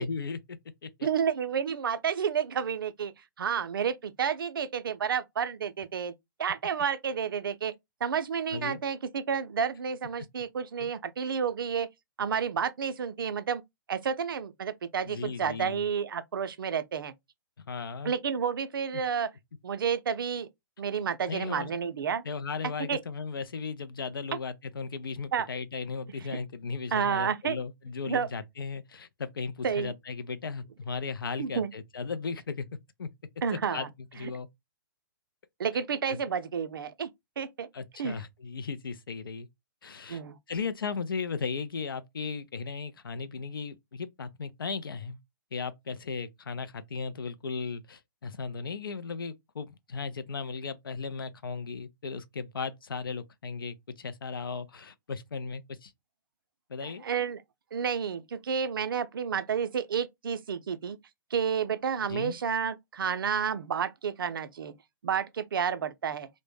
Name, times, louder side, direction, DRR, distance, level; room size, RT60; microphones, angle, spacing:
voice 1, 0.0-1.1 8.5-8.8 10.8-10.9 15.0-15.9 17.6-18.1 18.9-19.0 21.3-21.7 22.2-32.7 33.0-33.1 33.5-34.5 36.1-36.2 37.7-39.5 39.8-40.2 40.5-45.2 45.5-55.9 56.7-57.0 62.1-62.4, left 5 dB, 85° left, 0.4 m, -36 dB
voice 2, 1.0-3.1 3.4-6.1 6.4-7.7 8.0-11.9 12.2-13.6 13.9-17.1 18.0-19.3 19.6-20.5 20.8-22.2 22.9-23.0 25.3-25.5 26.9-27.6 28.1-28.3 29.6-29.9 31.4-31.7 33.4-33.9 34.2-34.3 35.6-37.1 37.4-37.7 38.0-38.2 40.1-40.4 56.8-57.4 57.7-61.0 61.3-64.7 65.0-66.3, right 7 dB, 80° right, 0.4 m, -30 dB
2.1 x 2.0 x 3.1 m
hypercardioid pair, 130°, 11 cm